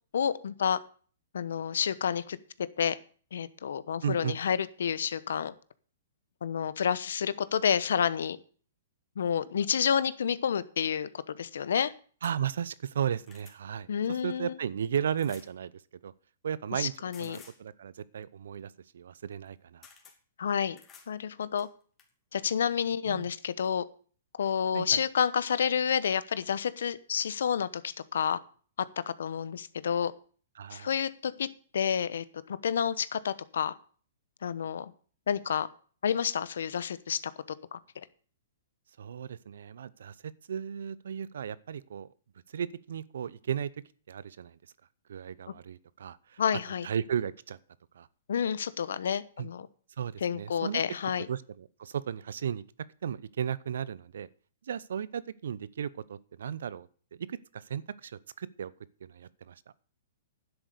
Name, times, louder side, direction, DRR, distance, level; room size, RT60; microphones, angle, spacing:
voice 1, 0.1-0.8 1.3-2.4 2.8-3.0 3.3-5.5 6.4-8.4 9.2-11.9 13.9-14.5 16.7-17.4 20.4-20.8 21.1-21.7 22.3-23.8 24.4-28.4 28.8-30.1 30.7-31.5 31.7-33.7 34.4-34.9 35.3-35.7 36.0-37.2 37.7-37.8 46.4-46.9 48.3-49.7 50.2-51.3, left 7 dB, 75° left, 17 dB, 0.9 m, -29 dB
voice 2, 4.0-4.3 12.2-15.7 16.0-16.1 16.4-16.9 17.2-19.9 23.1-23.3 24.7-25.0 30.6-30.9 39.0-42.1 42.5-43.7 44.1-44.6 45.1-46.4 46.8-47.6 47.9-48.1 49.4-49.5 50.0-50.8 51.3-52.6 53.0-54.3 54.6-56.9 57.2-58.7 59.0-59.6, right 8 dB, 75° right, 19 dB, 0.7 m, -35 dB
sound 1, 12.2-12.4 12.9-13.6 15.2-15.5 17.1-17.6 19.3-19.5 19.8-20.2 20.8-21.1 21.6-22.1 23.2-23.3 23.6-23.7, left 6 dB, 20° left, 2.8 m, -54 dB
10.5 x 7.9 x 6.6 m, 0.43 s
hypercardioid pair, 135°, 0 cm